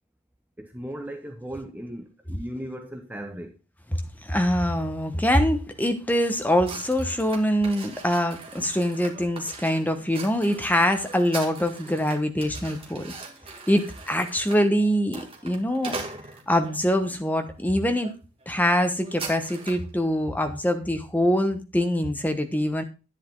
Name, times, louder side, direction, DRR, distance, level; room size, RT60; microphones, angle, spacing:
voice 1, 0.6-3.6, equal, 10° right, 0.8 m, -37 dB
voice 2, 3.9-13.1 13.7-16.0 16.5-18.1 18.5-22.8, equal, 10° left, 1.2 m, -24 dB
sound 1, 6.6-16.8 17.4-17.6 18.0-18.1 18.4-19.9, right 3 dB, 25° right, 2.6 m, -41 dB
11.0 x 9.7 x 3.9 m
head